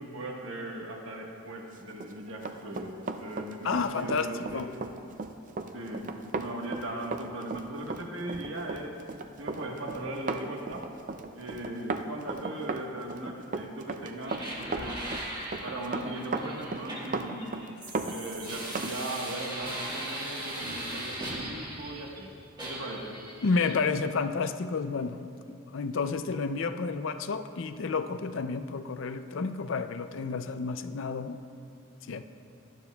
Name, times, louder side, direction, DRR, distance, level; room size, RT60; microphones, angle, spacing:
voice 1, 0.0-4.7 5.7-9.0 9.4-10.9 11.3-15.0 15.6-17.7 18.0-22.3 22.6-23.2, right 1 dB, 65° right, 0 dB, 1.4 m, -38 dB
Run, 1.9-18.9 19.3-19.4, right 3 dB, 35° right, 0.4 m, -36 dB
voice 2, 3.6-4.7 23.4-31.4 32.1-32.2, left 4 dB, 60° left, 10 dB, 0.4 m, -31 dB
sound 1, 14.2-22.2 22.6-23.8, right 1 dB, 20° right, 1.6 m, -39 dB
18.5 x 12.0 x 2.3 m, 2.5 s
head